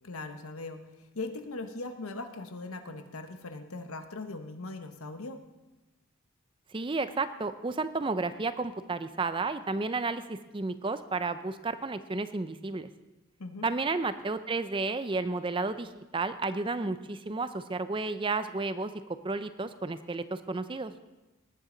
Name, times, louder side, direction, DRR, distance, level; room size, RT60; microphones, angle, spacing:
voice 1, 0.0-5.4 13.4-13.7, left 3 dB, 90° left, 7 dB, 1.0 m, -40 dB
voice 2, 6.7-12.9 13.6-18.9 19.2-20.9, right 3 dB, 25° right, 12 dB, 0.4 m, -32 dB
19.0 x 9.4 x 3.9 m, 1.1 s
head